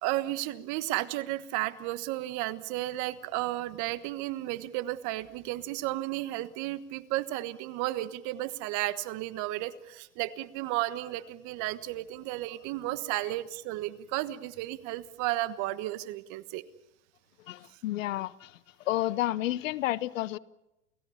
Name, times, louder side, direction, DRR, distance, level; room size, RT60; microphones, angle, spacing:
voice 1, 0.0-16.6, right 16 dB, 45° right, 1.4 m, -33 dB
voice 2, 17.5-18.6 18.8-20.4, left 15 dB, 75° left, 0.9 m, -31 dB
29.5 x 17.0 x 7.1 m
hypercardioid pair, 115°, 39 cm